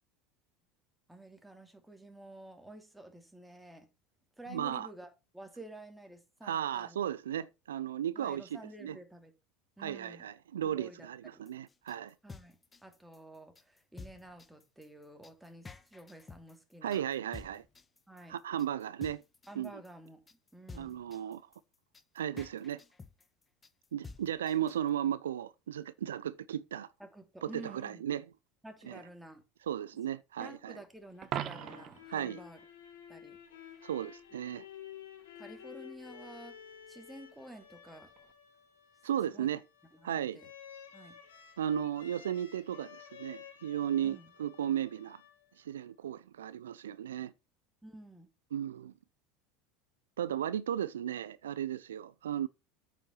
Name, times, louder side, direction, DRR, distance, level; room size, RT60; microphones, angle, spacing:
voice 1, 1.1-3.9 4.4-7.0 8.1-9.3 9.8-10.3 10.6-11.5 12.2-17.1 18.1-18.4 19.5-21.0 27.0-28.1 28.6-29.4 30.4-32.6 33.1-33.9 35.3-36.6 36.9-38.1 39.3-39.5 39.9-40.5 40.9-41.2 44.0-44.3 47.8-48.3, right 1 dB, 5° right, 3.0 m, -51 dB
voice 2, 4.5-4.9 6.4-8.4 8.8-9.0 9.8-12.1 16.8-17.6 18.3-19.2 19.6-19.7 20.7-21.4 22.1-22.8 23.9-26.9 27.4-28.2 28.9-29.0 29.7-30.8 32.1-32.4 33.8-34.7 39.0-39.6 40.0-40.4 41.6-45.2 45.6-47.3 48.5-48.9 50.2-52.5, right 10 dB, 85° right, 0.4 m, -35 dB
sound 1, 11.5-24.9, left 4 dB, 20° left, 1.2 m, -51 dB
sound 2, 31.1-45.8, left 9 dB, 80° left, 2.6 m, -53 dB
Coin (dropping), 31.2-32.1 38.2-38.3, right 11 dB, 45° right, 1.0 m, -38 dB
9.0 x 5.8 x 5.6 m
hypercardioid pair, 80°, 0 cm